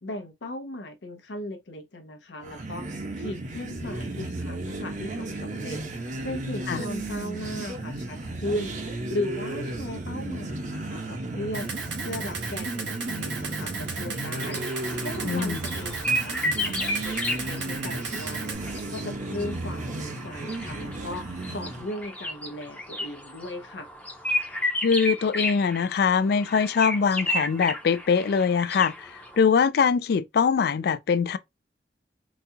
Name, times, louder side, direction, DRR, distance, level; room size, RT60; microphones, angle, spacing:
voice 1, 0.0-23.9, left 1 dB, 85° left, 0.7 m, -37 dB
sound 1, 2.4-21.9, right 2 dB, 45° right, 0.8 m, -34 dB
Camera, 11.5-18.5, right 4 dB, 80° right, 1.0 m, -35 dB
sound 2, 14.4-29.4, left 1 dB, 10° left, 0.7 m, -33 dB
voice 2, 15.2-15.6 24.8-31.4, left 6 dB, 60° left, 0.3 m, -23 dB
4.0 x 2.3 x 2.7 m
head